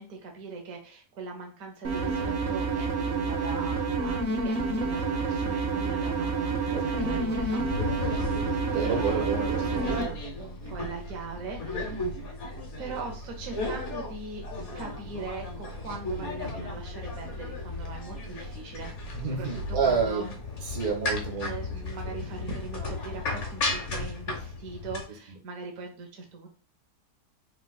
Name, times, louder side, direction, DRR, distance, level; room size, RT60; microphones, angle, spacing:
voice 1, 0.0-2.2 2.5-7.6 8.8-9.3 9.8-12.1 12.8-14.4 14.7-20.3 21.4-26.5, right 4 dB, 65° right, 2 dB, 1.2 m, -41 dB
sound 1, 1.8-10.0, right 4 dB, 50° right, 0.8 m, -29 dB
sound 2, 6.9-25.0, left 2 dB, 50° left, 1.3 m, -35 dB
voice 2, 8.7-10.2 16.4-16.6 19.1-20.4 20.6-21.5, right 5 dB, 80° right, 1 dB, 1.8 m, -29 dB
3.7 x 2.7 x 3.9 m, 0.36 s
omnidirectional pair, 1.6 m